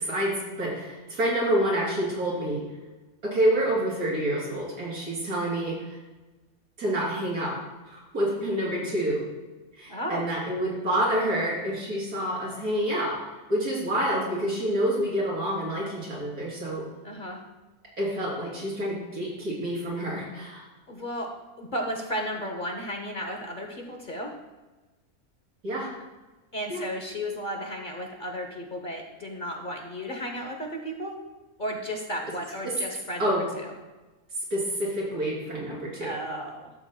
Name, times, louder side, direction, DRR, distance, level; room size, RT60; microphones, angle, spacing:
voice 1, 0.0-2.6 3.2-6.0 6.8-7.5 7.9-9.2 9.7-13.2 13.5-16.9 18.0-20.7 25.6-25.9 26.7-26.8 32.6-32.7 33.2-33.4 34.5-36.1, right 1 dB, 90° right, -5 dB, 3.9 m, -28 dB
voice 2, 9.9-10.3 17.0-17.4 20.9-21.3 21.6-24.4 26.5-31.1 31.6-33.3 33.6-33.7 36.0-36.7, equal, 40° left, 2 dB, 0.9 m, -34 dB
12.5 x 7.8 x 2.3 m, 1.2 s
omnidirectional pair, 1.6 m